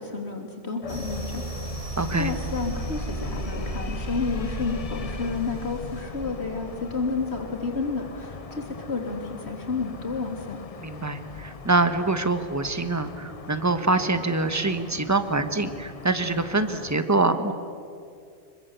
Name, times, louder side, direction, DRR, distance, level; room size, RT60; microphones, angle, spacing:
voice 1, 0.0-1.4 2.1-10.6, left 4 dB, 65° left, 1 dB, 3.7 m, -31 dB
sound 1, 0.8-17.0, left 5 dB, 35° left, 0.8 m, -41 dB
sound 2, 0.9-8.4, right 1 dB, 40° right, 5.0 m, -35 dB
voice 2, 2.0-2.3 10.8-17.5, right 3 dB, 15° right, 10 dB, 1.2 m, -25 dB
25.5 x 23.0 x 8.3 m, 2.3 s
omnidirectional pair, 1.2 m